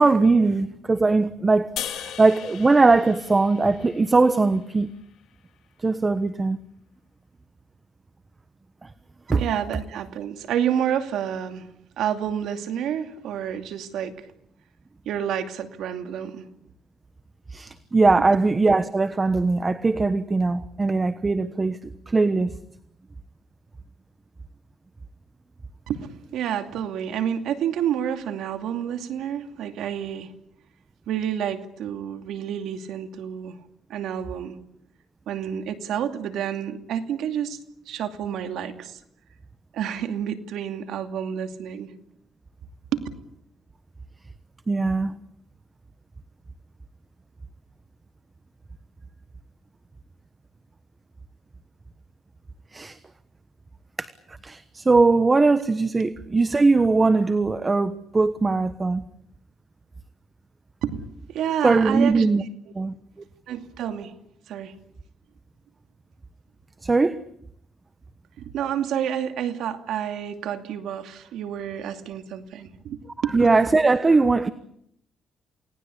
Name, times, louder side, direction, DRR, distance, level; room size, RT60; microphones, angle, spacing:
voice 1, 0.0-4.9 5.8-6.6 8.8-8.9 9.3-9.4 17.5-22.5 44.7-45.2 52.7-53.0 54.0-54.1 54.4-59.0 61.6-62.4 62.7-63.0 66.8-67.2 73.3-74.5, right 3 dB, 25° right, 1.2 m, -20 dB
sound 1, 1.8-5.0, left 10 dB, 75° left, 2.8 m, -38 dB
voice 2, 9.3-11.7 12.0-14.3 15.1-16.4 25.9-30.3 31.1-33.6 33.9-34.6 35.3-37.6 37.9-39.0 39.7-41.9 42.9-43.0 60.8-62.3 63.5-64.1 64.5-64.7 68.4-73.3, right 9 dB, 80° right, 2.6 m, -29 dB
28.5 x 19.0 x 8.6 m
cardioid pair, 90°, 0 cm